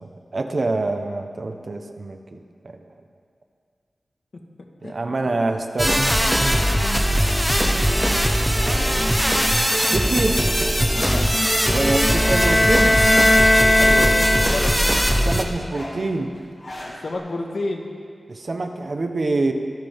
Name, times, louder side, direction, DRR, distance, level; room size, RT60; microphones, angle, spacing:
voice 1, 0.0-2.8 4.8-6.2 9.9-10.4 11.7-13.0 15.2-16.3 18.3-19.5, right 2 dB, 60° right, 5 dB, 1.2 m, -25 dB
sound 1, 5.8-15.4, equal, 5° right, 1.2 m, -20 dB
sound 2, 8.6-8.8 9.1-9.9 10.2-10.3 10.7-13.9 14.4-17.1, left 1 dB, 55° left, 4.4 m, -38 dB
voice 2, 10.9-11.3 13.7-14.8 17.0-17.9, left 2 dB, 70° left, 2 dB, 1.7 m, -29 dB
sound 3, 11.7-14.9, left 1 dB, 20° left, 0.7 m, -19 dB
23.5 x 13.0 x 3.7 m, 2.2 s
wide cardioid pair, 70°, 0 cm